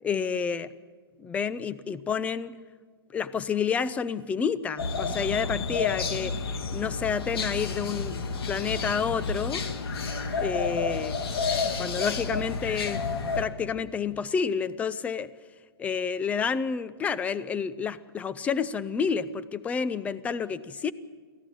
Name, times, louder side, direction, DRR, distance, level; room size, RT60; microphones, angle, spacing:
voice 1, 0.0-0.7 1.2-2.6 3.1-8.2 8.5-9.6 10.3-11.2 11.8-13.0 13.4-15.3 15.8-20.9, left 6 dB, 10° left, 15 dB, 0.5 m, -29 dB
sound 1, 4.8-13.4, left 4 dB, 70° left, 2.6 m, -30 dB
23.5 x 15.5 x 8.7 m, 1.5 s
hypercardioid pair, 155°, 13 cm